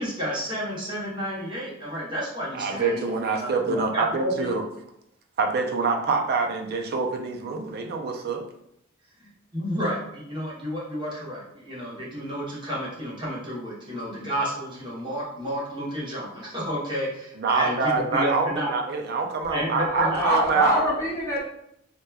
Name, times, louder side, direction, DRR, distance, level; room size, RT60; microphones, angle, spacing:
voice 1, 0.0-3.0 3.4-4.5 9.2-18.7 19.5-20.3, equal, 25° right, -7 dB, 0.9 m, -31 dB
voice 2, 2.5-4.6 5.4-8.4 17.4-20.8, right 4 dB, 50° right, 3 dB, 0.4 m, -25 dB
voice 3, 19.8-21.4, equal, 15° left, -6 dB, 0.6 m, -24 dB
2.9 x 2.2 x 2.2 m, 0.76 s
head